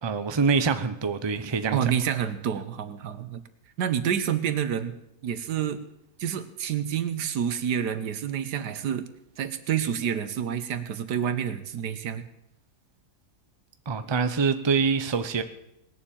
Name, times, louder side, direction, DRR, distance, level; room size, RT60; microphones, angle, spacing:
voice 1, 0.0-1.8 13.9-15.4, right 5 dB, 25° right, 10 dB, 0.6 m, -25 dB
voice 2, 1.7-3.4 3.8-4.9 5.2-5.8 6.2-9.0 9.4-12.2, right 9 dB, 85° right, 11 dB, 1.6 m, -28 dB
19.5 x 7.2 x 8.7 m, 0.81 s
omnidirectional pair, 1.7 m